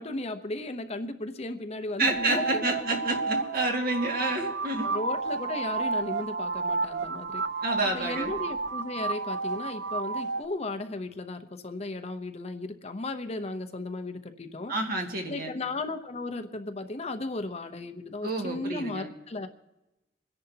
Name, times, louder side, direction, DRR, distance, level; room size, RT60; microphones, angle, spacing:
voice 1, 0.0-2.7 4.8-7.4 7.9-14.7 15.3-19.5, left 2 dB, 35° left, 8 dB, 0.8 m, -35 dB
voice 2, 2.0-4.9 7.6-8.3 14.7-15.5 18.2-19.1, right 2 dB, 55° right, 2 dB, 2.0 m, -29 dB
sound 1, 2.0-10.5, right 4 dB, 75° right, 0.5 m, -31 dB
28.0 x 10.5 x 2.8 m, 0.98 s
head